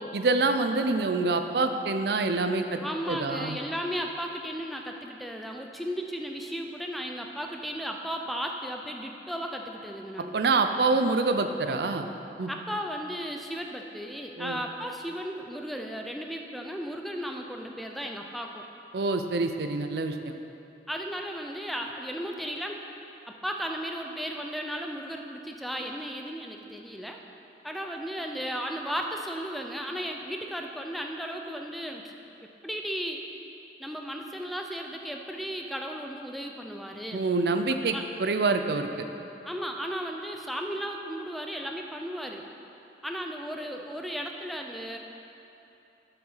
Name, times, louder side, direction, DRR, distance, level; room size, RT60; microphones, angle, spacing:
voice 1, 0.1-2.8 3.1-3.6 10.3-12.1 12.4-12.5 14.4-14.6 18.9-20.3 37.1-38.9, right 3 dB, 70° right, 7 dB, 0.5 m, -26 dB
voice 2, 2.8-10.4 12.5-18.7 20.9-22.8 23.3-27.2 27.6-32.1 32.6-33.2 33.8-37.2 37.9-38.0 39.4-42.5 43.0-45.0, equal, ahead, 2 dB, 0.4 m, -35 dB
7.4 x 5.8 x 5.5 m, 2.9 s
head